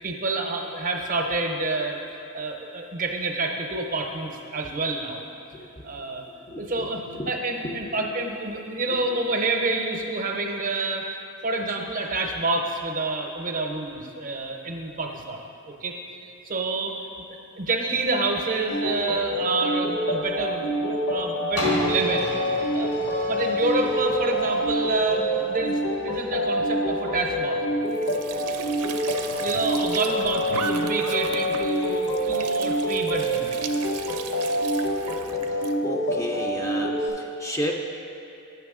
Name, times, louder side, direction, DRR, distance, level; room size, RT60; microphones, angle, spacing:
voice 1, 0.0-2.0 2.3-5.2 5.8-6.2 6.6-7.0 7.3-11.1 11.4-16.0 16.4-17.0 17.6-22.4 22.7-23.0 23.3-27.9 29.4-33.6, right 2 dB, 40° right, 3 dB, 0.6 m, -28 dB
voice 2, 5.5-7.3 7.6-8.3 8.9-9.2 35.4-37.7, equal, 15° left, 1 dB, 0.4 m, -34 dB
sound 1, 18.7-37.1, equal, 60° left, 0.7 m, -26 dB
sound 2, 21.6-27.3 27.9-28.0, left 2 dB, 85° left, 1.5 m, -34 dB
Squeak / Sink (filling or washing) / Trickle dribble, 27.9-35.8, right 6 dB, 90° right, 0.4 m, -37 dB
8.4 x 5.9 x 3.6 m, 2.7 s
head